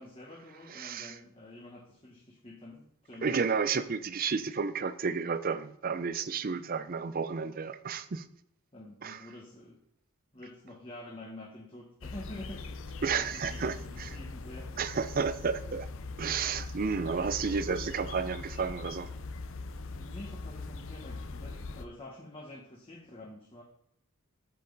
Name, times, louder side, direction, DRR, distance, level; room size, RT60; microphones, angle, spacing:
voice 1, 0.0-3.4 8.7-9.8 10.3-14.9 19.9-23.6, left 1 dB, 25° left, 1.2 m, -48 dB
voice 2, 0.7-1.1 3.2-8.3 9.0-9.2 13.0-14.2 14.8-15.9 16.2-19.1, right 5 dB, 40° right, 0.5 m, -32 dB
sound 1, 12.0-21.9, left 3 dB, 60° left, 0.6 m, -41 dB
8.3 x 7.5 x 4.0 m
head